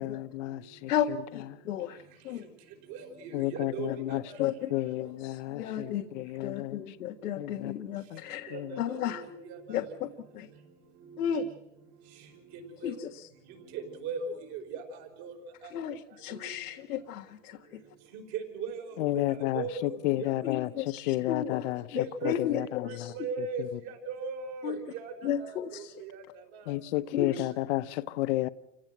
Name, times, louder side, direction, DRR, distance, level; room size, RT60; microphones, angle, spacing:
voice 1, 0.0-0.9 3.3-6.8 7.4-7.7 8.1-8.2 8.5-8.7 19.0-20.7 21.1-21.8 22.2-23.1 26.7-28.5, left 17 dB, 50° left, 0.9 m, -31 dB
voice 2, 0.9-2.5 4.4-4.7 5.0-6.0 6.4-9.2 9.7-10.5 11.2-11.5 12.8-13.3 15.7-17.8 20.4-23.1 24.6-24.8 25.2-25.9 27.1-27.5, left 9 dB, 90° left, 1.7 m, -34 dB
voice 3, 2.9-4.4 8.5-9.8 11.1-11.2 12.8-12.9 13.7-15.3 15.6-15.7 16.3-16.5 18.1-19.0 19.5-19.9 20.2-20.5 21.9-22.3 22.8-26.2 26.5-26.7 27.2-27.3, right 5 dB, 40° right, 4.8 m, -39 dB
29.0 x 16.5 x 7.9 m
supercardioid pair, 150°, 43 cm